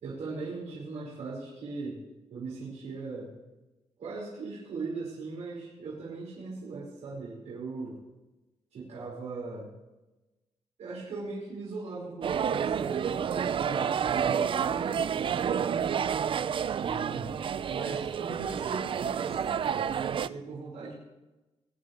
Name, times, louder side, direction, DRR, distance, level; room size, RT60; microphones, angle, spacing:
voice 1, 0.0-2.0 2.3-3.3 4.0-8.0 8.7-9.7 10.8-16.0 16.7-17.4 17.7-20.9, right 4 dB, 85° right, -8 dB, 5.2 m, -39 dB
sound 1, 12.2-20.3, right 8 dB, 50° right, 0.4 m, -29 dB
22.5 x 10.5 x 3.4 m, 1.1 s
wide cardioid pair, 125°, 12 cm